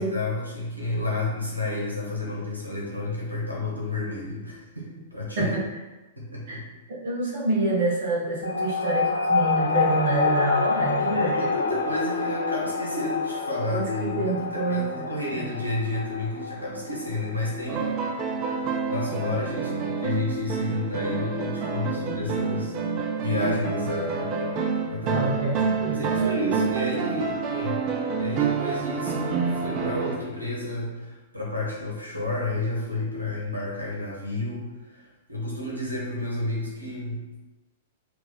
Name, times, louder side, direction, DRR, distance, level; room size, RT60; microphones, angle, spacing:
voice 1, 0.0-5.5 6.2-6.6 11.1-18.4 18.8-22.8 23.2-24.3 24.9-25.3 25.9-27.8 28.2-34.6 34.9-37.2, left 2 dB, 90° right, -3 dB, 1.1 m, -31 dB
voice 2, 6.9-11.3 13.7-15.5 25.1-26.5 27.1-27.2, right 3 dB, 50° right, -3 dB, 1.0 m, -27 dB
sound 1, 8.4-19.3, left 4 dB, 75° left, 0.4 m, -28 dB
sound 2, 17.7-30.2, right 5 dB, 35° right, 0.5 m, -28 dB
4.5 x 2.5 x 4.0 m, 1.1 s
figure-of-eight pair, 100°, 0 cm